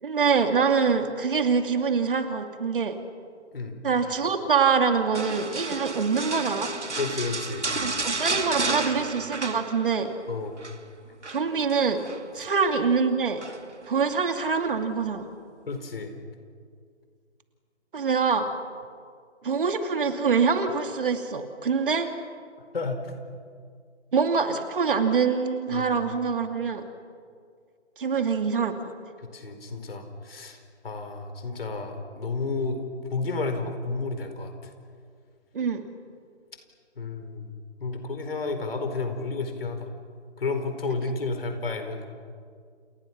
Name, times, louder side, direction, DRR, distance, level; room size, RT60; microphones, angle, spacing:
voice 1, 0.0-3.0 3.8-6.7 7.8-10.1 11.3-12.0 12.3-13.4 13.9-15.2 17.9-18.5 19.4-22.1 24.1-26.8 28.0-28.8 35.5-35.8, right 5 dB, 50° right, 6 dB, 2.5 m, -24 dB
sound 1, 5.1-10.2 10.4-10.8 11.2-12.3 13.4-13.8 14.4-14.5, right 3 dB, 90° right, 1.6 m, -32 dB
voice 2, 7.0-7.6 10.3-10.6 12.4-12.5 15.7-16.1 22.7-23.1 25.7-26.1 29.2-30.6 30.8-32.8 33.1-34.7 37.0-37.5 37.8-39.9 40.4-42.1, left 3 dB, 55° left, 6 dB, 4.7 m, -31 dB
30.0 x 29.5 x 6.1 m, 2.1 s
figure-of-eight pair, 145°, 34 cm